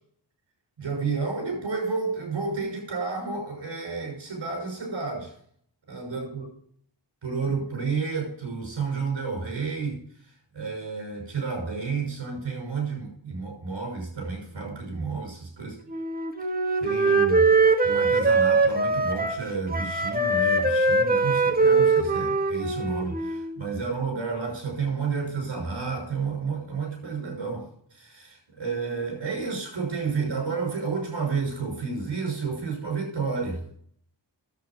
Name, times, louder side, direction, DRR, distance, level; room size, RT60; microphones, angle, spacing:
voice 1, 0.8-5.3 5.9-6.4 7.2-10.0 10.5-15.8 16.8-17.5 17.8-33.6, right 4 dB, 80° right, 6.2 m, -31 dB
Wind instrument woodwind instrument, 15.9-23.6, right 3 dB, 20° right, 1.6 m, -22 dB
10.5 x 8.2 x 6.0 m
wide cardioid pair, 65°, 44 cm